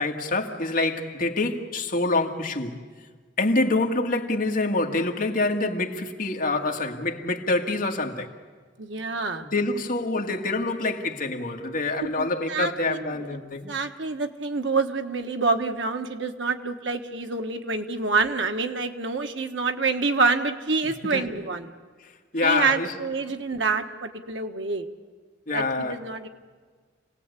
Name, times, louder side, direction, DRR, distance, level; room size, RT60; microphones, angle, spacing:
voice 1, 0.0-2.8 3.4-8.3 9.5-13.7 21.0-21.3 22.3-22.9 25.5-26.0, left 2 dB, 45° left, 1.9 m, -26 dB
voice 2, 8.8-9.4 12.0-13.2 13.7-21.7 22.4-24.9 25.5-26.3, right 4 dB, 75° right, 1.5 m, -27 dB
29.0 x 19.0 x 8.3 m
head